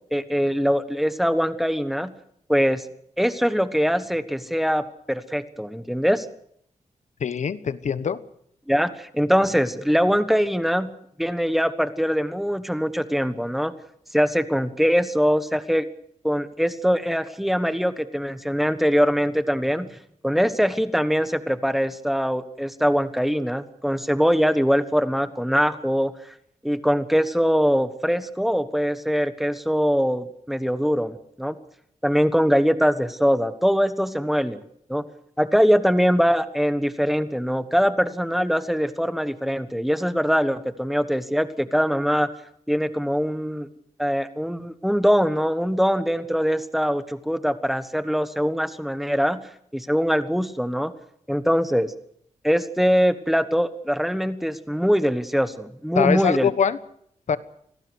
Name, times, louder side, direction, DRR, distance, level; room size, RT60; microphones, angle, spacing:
voice 1, 0.1-2.1 2.5-2.8 3.2-6.3 8.7-10.9 11.2-13.7 14.1-15.8 16.2-19.9 20.2-26.1 26.6-31.5 32.0-34.6 34.9-35.0 35.4-42.3 42.7-43.7 44.0-49.4 49.7-50.9 51.3-51.9 52.4-56.5, equal, ahead, 11 dB, 1.2 m, -22 dB
voice 2, 7.2-8.2 56.0-56.8 57.3-57.4, left 7 dB, 70° left, 14 dB, 1.2 m, -23 dB
26.0 x 18.5 x 6.4 m, 0.68 s
wide cardioid pair, 170°, 13 cm